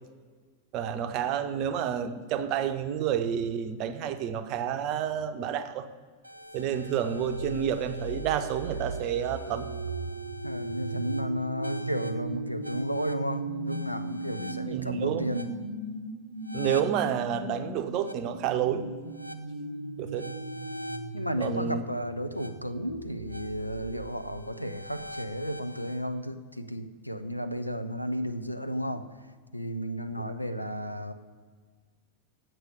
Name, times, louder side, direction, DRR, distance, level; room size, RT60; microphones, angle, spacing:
voice 1, 0.7-5.9 6.5-9.7 14.7-15.3 16.5-18.9 20.0-20.3 21.4-21.8 30.1-30.2, right 9 dB, 40° right, 0.6 m, -29 dB
sound 1, 6.2-26.0, right 2 dB, 80° right, 0.6 m, -37 dB
voice 2, 10.4-15.5 21.1-29.0 29.5-31.1, equal, 90° left, 0.5 m, -33 dB
8.1 x 6.1 x 6.7 m
figure-of-eight pair, 90°, 0 cm